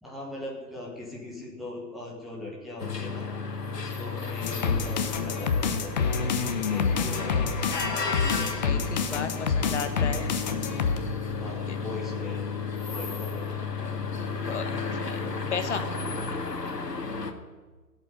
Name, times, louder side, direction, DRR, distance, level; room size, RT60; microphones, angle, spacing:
voice 1, 0.0-3.3 3.7-6.3 6.7-7.4 11.4-12.4 12.9-13.5, left 1 dB, ahead, -4 dB, 1.2 m, -40 dB
sound 1, 2.8-17.3, left 5 dB, 70° left, 2.0 m, -33 dB
sound 2, 4.4-11.0, left 5 dB, 25° left, 1.0 m, -27 dB
voice 2, 8.6-10.3 11.7-11.8 14.3-15.2 15.5-15.9, left 6 dB, 45° left, 8 dB, 1.5 m, -34 dB
17.5 x 8.3 x 9.4 m, 1.3 s
figure-of-eight pair, 135°, 49 cm